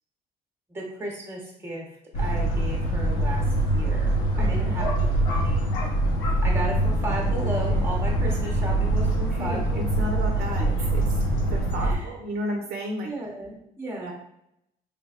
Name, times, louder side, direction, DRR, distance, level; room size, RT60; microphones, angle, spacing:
voice 1, 0.7-1.8 2.2-3.4 3.7-5.7 6.4-9.8 11.8-12.1 13.0-14.1, right 1 dB, 15° right, -2 dB, 1.0 m, -34 dB
sound 1, 2.1-11.9, right 1 dB, 80° left, 0.8 m, -24 dB
voice 2, 4.3-4.7 9.3-9.6 10.0-11.0 11.5-13.1 14.0-14.1, right 1 dB, 60° right, 0 dB, 0.7 m, -33 dB
3.4 x 3.1 x 2.4 m, 0.77 s
cardioid pair, 110°, 17 cm